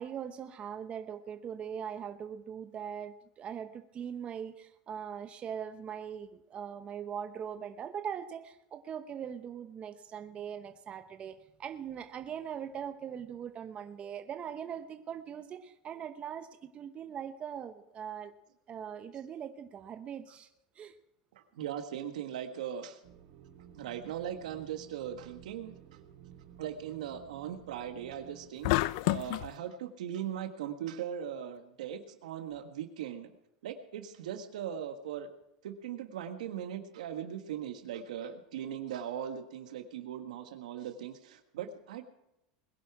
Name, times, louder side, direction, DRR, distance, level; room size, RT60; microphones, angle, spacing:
voice 1, 0.0-18.3 18.7-20.5 20.8-20.9, right 8 dB, 30° right, 8 dB, 0.9 m, -41 dB
voice 2, 21.3-23.0 23.7-25.8 26.6-28.7 29.0-33.3 33.6-35.3 35.6-42.0, right 9 dB, 90° right, 7 dB, 1.5 m, -39 dB
sound 1, 23.0-28.5, right 9 dB, 60° right, 1.8 m, -54 dB
sound 2, 28.6-29.5, left 19 dB, 65° left, 0.4 m, -28 dB
21.0 x 11.0 x 4.8 m, 0.86 s
supercardioid pair, 125°, 4 cm